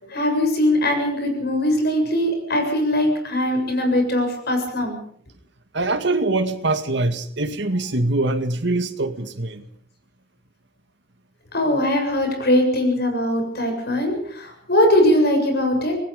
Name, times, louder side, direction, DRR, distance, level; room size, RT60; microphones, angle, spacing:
voice 1, 0.0-5.0 11.5-15.9, left 1 dB, 55° left, 7.4 m, -21 dB
voice 2, 5.7-9.6, right 2 dB, 60° right, 2.1 m, -23 dB
26.0 x 20.0 x 5.3 m
head